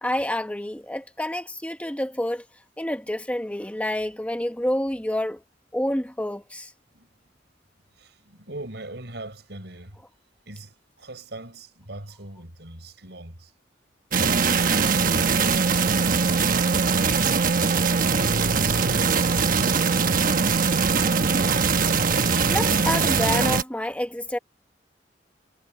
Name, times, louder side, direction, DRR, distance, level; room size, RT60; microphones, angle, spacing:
voice 1, 0.0-2.4 2.8-5.4 5.7-6.7 22.4-24.4, left 1 dB, 10° left, 1.1 m, -28 dB
voice 2, 8.0-10.0 10.5-13.5 14.1-16.3 16.5-18.0 18.6-19.8, right 2 dB, 70° right, 6.3 m, -41 dB
sound 1, 14.1-23.6, right 5 dB, 50° right, 1.1 m, -21 dB
head